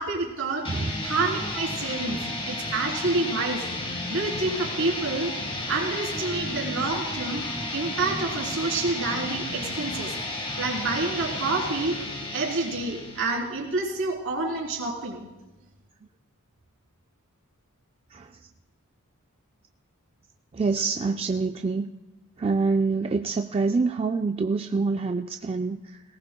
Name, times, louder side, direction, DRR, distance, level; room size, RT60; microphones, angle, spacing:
voice 1, 0.0-0.7 1.0-2.2 2.5-3.7 4.1-5.3 5.7-7.4 7.7-12.0 12.3-15.3, right 3 dB, 65° right, -2 dB, 3.5 m, -28 dB
sound 1, 0.6-13.5, left 2 dB, 25° left, 1.6 m, -32 dB
voice 2, 20.5-21.9 22.4-26.0, right 4 dB, 25° right, 5 dB, 0.3 m, -26 dB
20.0 x 18.0 x 2.2 m, 1.1 s
head